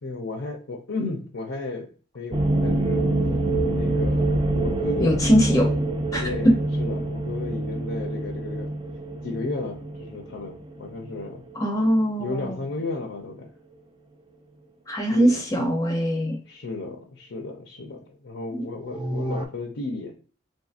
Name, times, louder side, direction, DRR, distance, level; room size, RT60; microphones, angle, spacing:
voice 1, 0.0-3.1 3.7-5.2 6.2-8.7 9.2-11.4 12.2-13.5 15.0-15.4 16.5-20.1, left 3 dB, 80° left, 1 dB, 0.6 m, -34 dB
sound 1, 2.3-11.8 12.1-12.2 12.4-12.5 18.9-19.5, right 2 dB, 25° right, 0.4 m, -26 dB
voice 2, 5.0-5.7 6.1-6.2 11.5-12.6 14.9-16.4 18.5-18.6, equal, 20° left, 1 dB, 0.6 m, -22 dB
3.7 x 2.6 x 2.4 m, 0.38 s
head